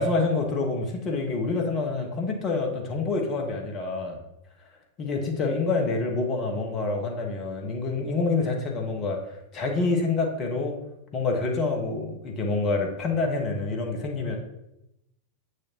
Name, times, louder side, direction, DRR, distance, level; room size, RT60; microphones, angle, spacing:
voice 1, 0.0-4.2 5.0-10.8 11.1-14.4, left 3 dB, 30° left, 2 dB, 1.4 m, -27 dB
8.3 x 6.4 x 3.0 m, 0.88 s
figure-of-eight pair, 90°, 0 cm